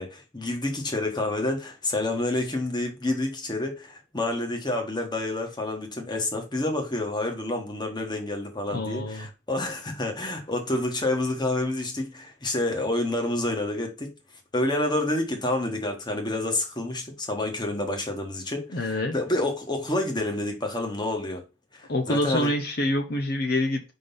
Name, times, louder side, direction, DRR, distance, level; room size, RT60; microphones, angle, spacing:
voice 1, 0.0-14.1 14.5-21.4 21.7-22.5, left 2 dB, 25° left, 1.3 m, -28 dB
voice 2, 8.7-9.3 18.7-19.1 21.9-23.9, left 1 dB, 55° left, 0.8 m, -26 dB
5.1 x 3.8 x 5.4 m
head